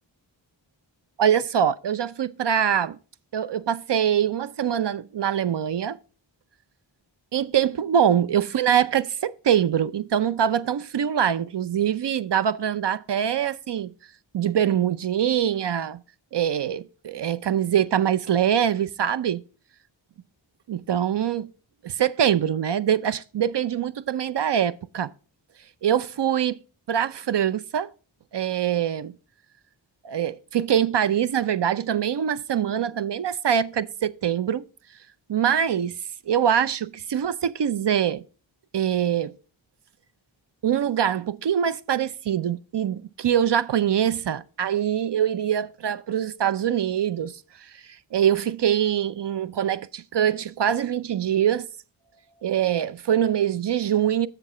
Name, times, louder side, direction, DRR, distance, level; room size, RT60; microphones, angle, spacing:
voice 1, 1.2-3.0 3.3-6.0 7.3-13.9 14.3-16.0 16.3-19.4 20.7-21.5 21.8-25.1 25.8-26.6 26.9-27.9 28.3-29.2 30.0-34.6 35.3-36.0 36.3-38.2 38.7-39.3 40.6-47.4 47.7-47.8 48.1-51.7 52.4-54.3, right 9 dB, 60° right, 0.6 m, -24 dB
7.5 x 6.6 x 4.9 m
wide cardioid pair, 50°, 47 cm